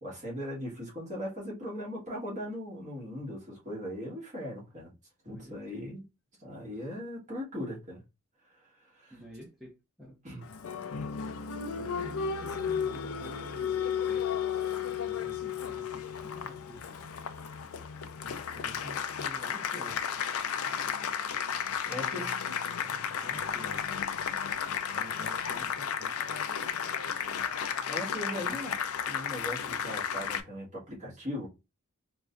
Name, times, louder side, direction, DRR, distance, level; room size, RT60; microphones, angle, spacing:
voice 1, 0.0-4.9 5.2-6.0 6.4-8.0 8.9-9.1 10.2-10.5 21.9-22.3 27.9-28.7 29.0-31.5, left 1 dB, 35° right, 1.5 m, -39 dB
voice 2, 5.2-5.8 9.1-10.2 11.8-14.4 14.9-16.9 18.5-20.1 21.8-22.2 22.8-23.9 24.9-26.1 28.4-28.6, equal, ahead, 0.8 m, -49 dB
Applause, 10.4-30.4, left 7 dB, 90° left, 0.4 m, -33 dB
4.7 x 2.2 x 2.5 m
head